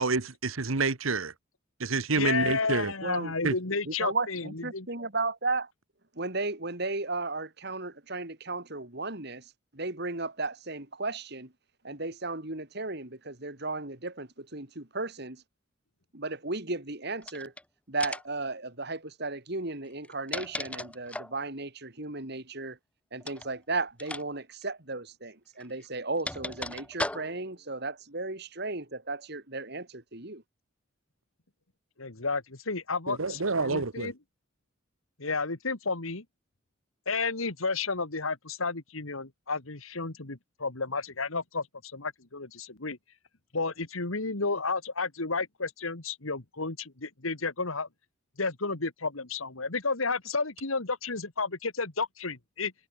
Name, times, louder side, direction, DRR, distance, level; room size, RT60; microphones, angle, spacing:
voice 1, 0.0-1.3 1.8-2.9 3.4-3.5 33.1-34.1, right 3 dB, 85° right, 1.5 m, -28 dB
voice 2, 2.1-4.9 32.0-34.2 35.2-36.2 37.1-43.0 43.5-47.9 48.4-52.7, left 4 dB, 85° left, 2.3 m, -32 dB
voice 3, 3.0-3.3 3.9-5.7 6.2-11.5 11.8-15.4 16.1-17.5 17.9-22.8 23.1-30.4, right 3 dB, 55° right, 3.5 m, -35 dB
sound 1, 17.2-17.6 18.0-18.4 19.9-21.4 23.2-23.5 24.0-24.2 24.5-24.6 25.6-27.5, left 1 dB, 5° left, 0.9 m, -37 dB
head